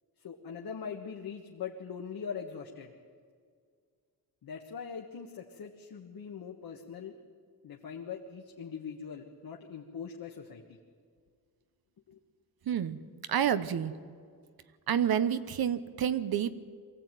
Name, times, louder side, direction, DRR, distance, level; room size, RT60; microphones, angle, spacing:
voice 1, 0.2-2.9 4.4-7.1 7.6-10.8 12.1-12.2, left 6 dB, 70° left, 1 dB, 1.6 m, -42 dB
voice 2, 12.7-13.0 13.3-13.9 14.9-16.6, right 9 dB, 70° right, 13 dB, 1.1 m, -29 dB
23.0 x 16.0 x 9.2 m, 2.1 s
wide cardioid pair, 150°, 37 cm